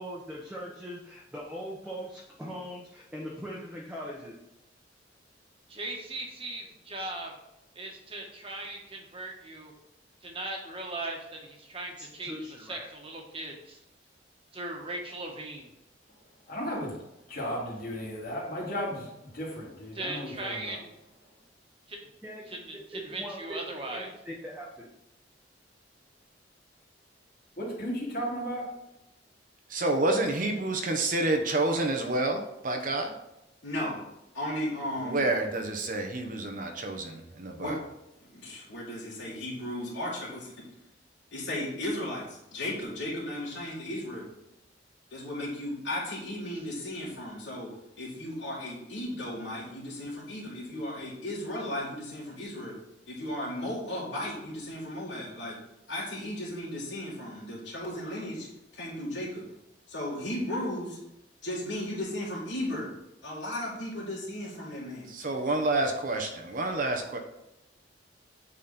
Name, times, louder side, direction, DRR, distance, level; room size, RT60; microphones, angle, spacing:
voice 1, 0.0-4.4 12.0-12.9 22.2-22.5 22.9-24.9, equal, 5° right, -5 dB, 1.1 m, -41 dB
voice 2, 5.7-7.3 7.7-9.7 10.2-12.4 12.7-13.8 14.5-15.7 19.9-20.9 21.9-22.0 22.5-24.1, right 2 dB, 30° right, 1 dB, 1.5 m, -38 dB
voice 3, 16.5-16.9 17.3-20.8 27.6-28.7, equal, 50° left, -4 dB, 2.7 m, -35 dB
voice 4, 29.7-33.1 35.0-37.8 65.1-67.2, right 2 dB, 50° right, 4 dB, 0.9 m, -28 dB
voice 5, 33.6-34.0 34.3-35.3 37.6-37.8 38.2-40.6 41.3-44.3 45.1-47.7 48.0-52.8 53.1-55.6 55.9-58.5 58.7-59.4 59.9-61.0 61.4-62.9 63.2-65.1, left 1 dB, 85° left, -9 dB, 2.6 m, -35 dB
8.6 x 4.2 x 4.2 m, 0.88 s
head